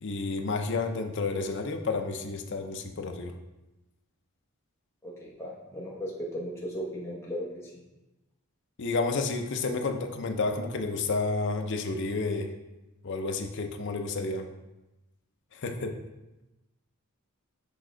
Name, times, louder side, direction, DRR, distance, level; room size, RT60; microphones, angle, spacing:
voice 1, 0.0-3.3 8.8-12.5 13.0-14.5 15.5-16.0, left 3 dB, 55° left, 5 dB, 0.6 m, -30 dB
voice 2, 5.0-7.5, equal, 10° left, -6 dB, 1.0 m, -36 dB
6.9 x 3.7 x 3.8 m, 1.0 s
head